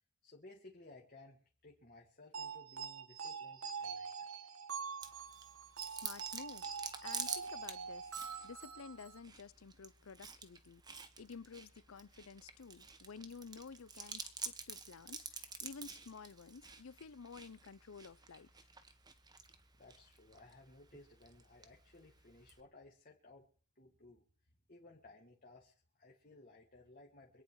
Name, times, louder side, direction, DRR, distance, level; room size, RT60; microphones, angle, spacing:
voice 1, 0.2-4.3 19.7-23.5 23.8-27.4, left 2 dB, 40° left, 2.4 m, -59 dB
sound 1, 2.3-9.2, right 6 dB, 75° right, 1.5 m, -44 dB
Chewing mastication, 5.0-22.6, right 5 dB, 20° right, 1.3 m, -50 dB
voice 2, 5.9-6.7 7.0-8.1 8.4-18.5, left 5 dB, 75° left, 0.6 m, -52 dB
26.0 x 9.6 x 4.8 m
head